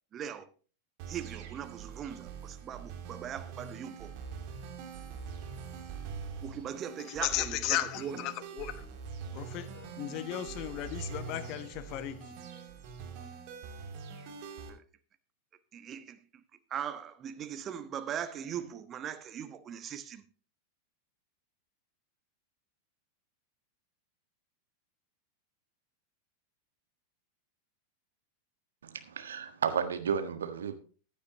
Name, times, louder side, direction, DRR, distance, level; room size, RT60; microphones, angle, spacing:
voice 1, 0.1-0.5 1.1-4.1 6.4-8.3 14.7-14.8 15.7-16.2 16.7-20.2, right 8 dB, 30° right, 1.1 m, -40 dB
sound 1, 1.0-14.7, right 6 dB, 45° right, 2.6 m, -44 dB
voice 2, 7.2-8.9 9.3-12.3, left 13 dB, 40° left, 1.1 m, -35 dB
voice 3, 28.8-30.8, right 7 dB, 65° right, 1.5 m, -33 dB
15.0 x 10.5 x 2.9 m
figure-of-eight pair, 90°, 0 cm